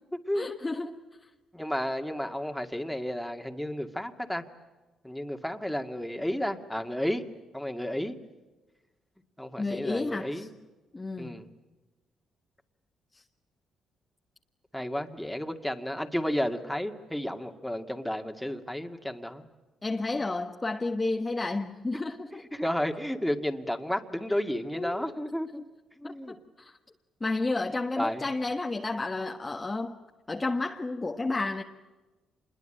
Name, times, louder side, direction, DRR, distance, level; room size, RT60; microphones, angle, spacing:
voice 1, 0.3-1.0 9.6-10.5 10.9-11.4 19.8-22.4 24.7-25.2 26.0-26.7 27.2-30.0 30.3-31.6, left 3 dB, 20° left, 1.4 m, -31 dB
voice 2, 1.5-4.4 5.0-7.2 7.5-8.2 9.4-10.5 11.2-11.4 14.7-19.4 22.5-25.6 26.0-26.3 28.0-28.2, equal, 5° left, 2.2 m, -32 dB
27.0 x 21.5 x 9.1 m
cardioid pair, 90°, 0 cm